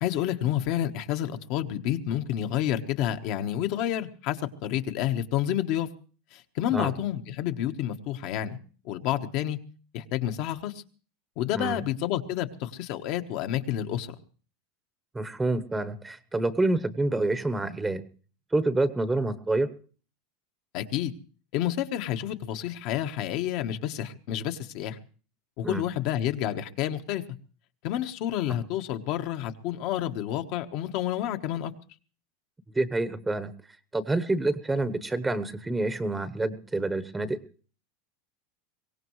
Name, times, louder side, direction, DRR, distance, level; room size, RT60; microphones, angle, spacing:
voice 1, 0.0-5.9 6.3-8.6 8.8-9.6 9.9-10.8 11.4-14.1 20.7-21.1 21.5-25.0 25.6-27.2 27.8-31.7, left 11 dB, 55° left, 7 dB, 1.2 m, -29 dB
voice 2, 15.1-18.0 18.5-19.7 25.6-25.8 32.7-33.5 33.9-37.4, right 2 dB, 10° right, 13 dB, 0.9 m, -27 dB
23.0 x 17.5 x 3.2 m, 0.39 s
supercardioid pair, 140°, 0 cm